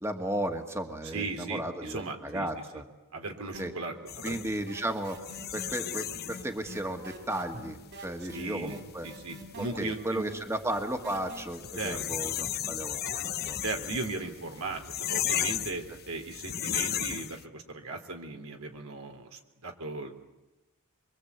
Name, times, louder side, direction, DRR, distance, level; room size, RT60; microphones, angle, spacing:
voice 1, 0.0-2.8 3.6-3.7 4.2-5.2 5.5-9.1 9.8-13.2 13.5-13.6, right 1 dB, 15° right, 5 dB, 1.8 m, -34 dB
voice 2, 1.1-2.6 3.1-4.3 8.3-8.8 9.0-10.3 11.8-12.0 13.6-20.1, right 3 dB, 85° right, 4 dB, 3.2 m, -37 dB
sound 1, 3.5-4.0 4.3-11.4, equal, 60° right, 5.0 m, -45 dB
sound 2, 4.1-17.4, left 10 dB, 50° left, 0.9 m, -36 dB
25.0 x 24.5 x 8.2 m, 1.0 s
head